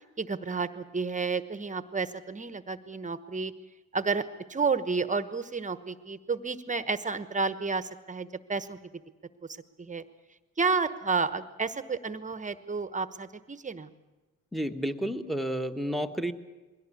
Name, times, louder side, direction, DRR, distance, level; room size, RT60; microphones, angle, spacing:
voice 1, 0.2-3.5 3.9-4.2 4.5-8.8 9.8-10.0 10.6-13.9, right 4 dB, 25° right, 12 dB, 1.1 m, -31 dB
voice 2, 14.5-16.3, equal, ahead, 8 dB, 1.3 m, -31 dB
22.0 x 17.0 x 8.5 m, 1.2 s
cardioid pair, 90°, 30 cm